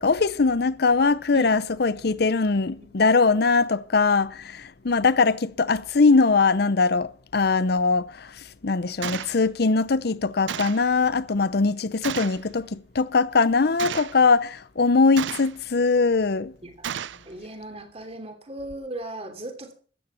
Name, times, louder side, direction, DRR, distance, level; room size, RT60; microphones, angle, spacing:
voice 1, 0.0-16.5, left 4 dB, 60° left, 0.7 m, -21 dB
Gunshot gunfire, 9.0-9.3 10.5-10.9 12.0-12.4 13.8-14.2 15.2-15.6 16.8-17.2, right 9 dB, 90° right, 0.5 m, -32 dB
voice 2, 16.6-19.7, right 1 dB, 35° right, 3.0 m, -38 dB
14.0 x 9.7 x 5.7 m
head